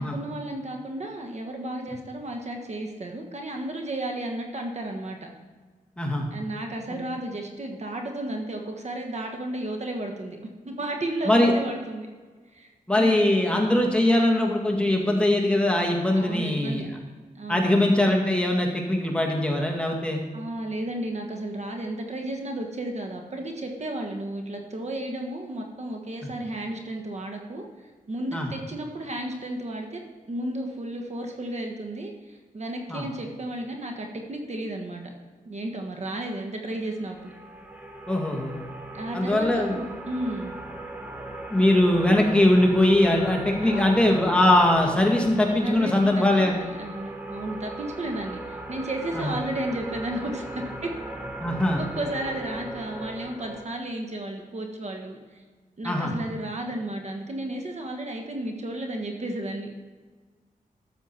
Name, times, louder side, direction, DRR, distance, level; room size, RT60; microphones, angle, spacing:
voice 1, 0.0-5.2 6.3-10.4 10.6-12.1 12.5-12.7 12.9-13.3 16.1-16.8 17.3-17.7 20.3-27.6 28.1-30.0 30.3-35.0 35.4-37.3 38.9-40.5 43.6-44.1 45.6-50.9 51.8-55.4 55.8-59.7, right 1 dB, 50° right, 3 dB, 1.3 m, -33 dB
voice 2, 12.9-16.9 17.5-20.2 28.3-28.5 32.9-33.0 38.1-38.6 39.1-39.8 41.5-46.6 49.1-49.3 51.4-51.8 55.8-56.1, left 1 dB, 5° left, 0 dB, 1.9 m, -21 dB
sound 1, 36.8-53.6, right 1 dB, 10° right, 1.3 m, -38 dB
12.5 x 7.2 x 4.4 m, 1.4 s
wide cardioid pair, 80°, 15 cm